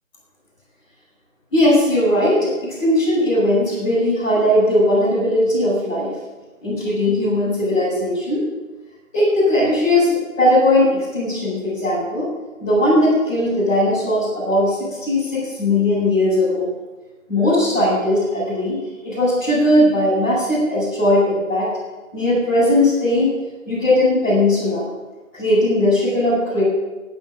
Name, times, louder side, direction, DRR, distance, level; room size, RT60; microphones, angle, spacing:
voice 1, 1.5-6.1 6.6-8.4 9.1-10.1 10.4-12.3 12.6-16.7 17.3-18.8 19.0-21.7 22.1-23.3 23.6-24.8 25.4-26.6, left 1 dB, 5° left, -18 dB, 4.9 m, -18 dB
10.5 x 9.4 x 9.6 m, 1.2 s
figure-of-eight pair, 175°, 42 cm